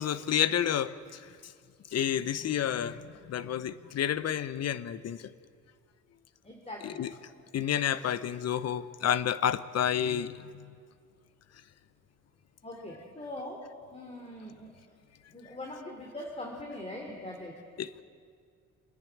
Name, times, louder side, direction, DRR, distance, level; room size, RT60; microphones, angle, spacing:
voice 1, 0.0-1.5 1.9-5.2 6.8-7.1 7.5-10.7 17.8-17.9, left 9 dB, 55° left, 15 dB, 0.9 m, -30 dB
voice 2, 6.4-7.0 12.6-13.6 13.9-14.7 15.3-17.5, left 1 dB, 20° left, 1 dB, 3.1 m, -41 dB
26.0 x 10.5 x 9.9 m, 2.1 s
cardioid pair, 90°, 30 cm